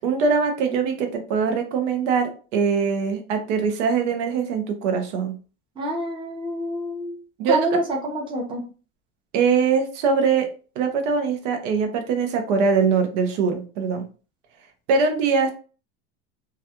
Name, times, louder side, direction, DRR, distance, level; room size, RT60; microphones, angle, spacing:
voice 1, 0.0-5.3 7.4-7.8 9.3-10.5 10.8-14.0 14.9-15.5, right 5 dB, 80° right, 5 dB, 0.7 m, -22 dB
voice 2, 5.8-7.2 7.5-8.6, right 1 dB, 15° right, -1 dB, 0.7 m, -27 dB
2.3 x 2.2 x 2.8 m, 0.36 s
supercardioid pair, 135°, 36 cm